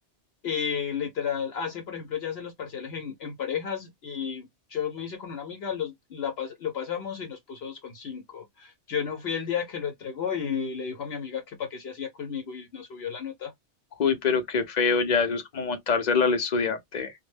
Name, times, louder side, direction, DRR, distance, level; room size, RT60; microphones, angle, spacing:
voice 1, 0.4-13.5, left 7 dB, 65° left, 0.9 m, -33 dB
voice 2, 14.0-17.1, left 5 dB, 50° left, 0.6 m, -25 dB
2.2 x 2.0 x 3.1 m
omnidirectional pair, 1.2 m